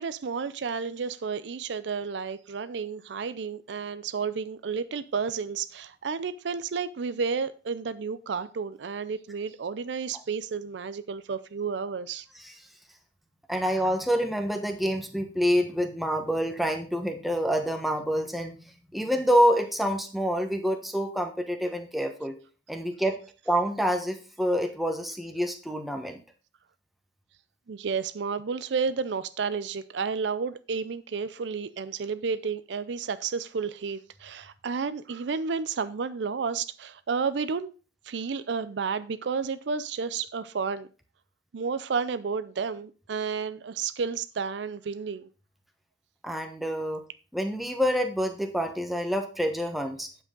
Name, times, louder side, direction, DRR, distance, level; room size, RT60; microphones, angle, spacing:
voice 1, 0.0-12.3 27.7-37.7 38.1-40.9 41.5-45.3, right 5 dB, 70° right, 0.5 m, -31 dB
voice 2, 13.5-18.6 18.9-22.3 22.7-23.2 23.5-26.2 46.2-47.0 47.3-50.1, equal, ahead, 1.2 m, -27 dB
8.9 x 7.7 x 3.8 m
head